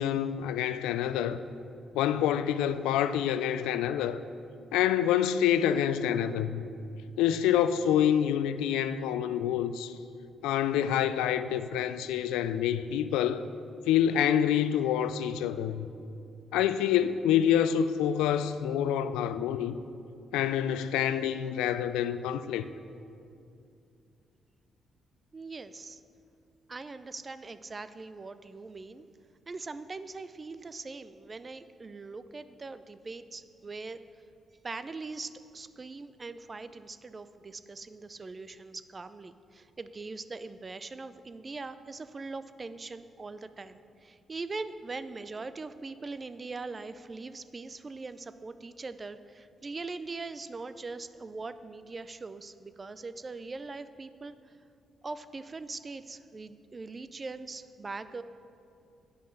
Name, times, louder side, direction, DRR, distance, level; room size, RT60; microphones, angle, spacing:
voice 1, 0.0-1.4 1.9-4.2 4.7-6.6 7.2-10.0 10.4-13.4 13.9-15.9 16.5-19.8 20.3-22.6, left 10 dB, 85° left, 0.3 m, -27 dB
voice 2, 25.3-26.0 26.7-29.1 29.5-34.0 34.6-54.4 55.0-58.2, right 3 dB, 35° right, 0.5 m, -41 dB
8.6 x 5.4 x 7.8 m
supercardioid pair, 50°, 0 cm